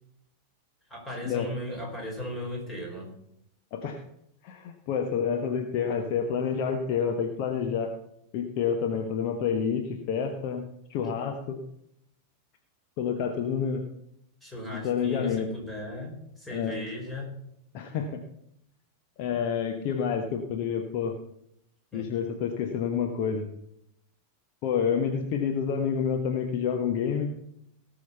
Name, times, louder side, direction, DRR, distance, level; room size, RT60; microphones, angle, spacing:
voice 1, 0.9-3.1 14.4-17.3 21.9-22.1, left 1 dB, 10° left, 0 dB, 4.6 m, -37 dB
voice 2, 3.7-4.0 4.4-7.9 8.3-10.6 10.9-11.6 13.0-13.8 14.7-15.5 16.5-16.8 17.7-18.2 19.2-21.1 21.9-23.5 24.6-27.3, left 7 dB, 45° left, 4 dB, 1.2 m, -28 dB
18.0 x 6.4 x 5.7 m, 0.77 s
figure-of-eight pair, 90°, 0 cm